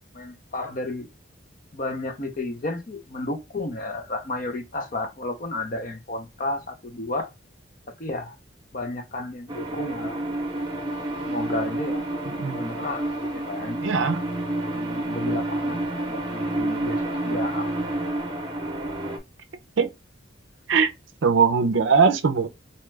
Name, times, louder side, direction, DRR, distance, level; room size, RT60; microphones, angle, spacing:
voice 1, 0.1-1.1 1.7-7.3 8.0-8.4 8.7-10.2 11.3-12.0 12.5-13.8 14.5-17.7, left 2 dB, 40° left, 0.7 m, -32 dB
sound 1, 9.5-19.2, right 1 dB, 25° right, 0.8 m, -29 dB
voice 2, 12.3-12.7 13.8-14.2 19.8-19.9 20.7-20.9 21.2-22.5, right 5 dB, 70° right, 0.5 m, -20 dB
4.3 x 2.3 x 3.1 m
head